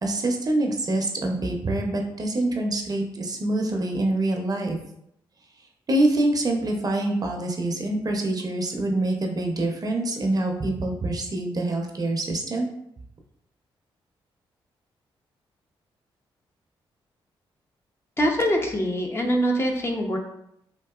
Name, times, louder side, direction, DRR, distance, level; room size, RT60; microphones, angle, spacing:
voice 1, 0.0-4.8 5.9-12.7, right 2 dB, 40° right, 2 dB, 0.6 m, -25 dB
voice 2, 18.2-20.2, equal, 25° left, 1 dB, 0.6 m, -23 dB
3.6 x 2.6 x 2.3 m, 0.75 s
cardioid pair, 65°, 10 cm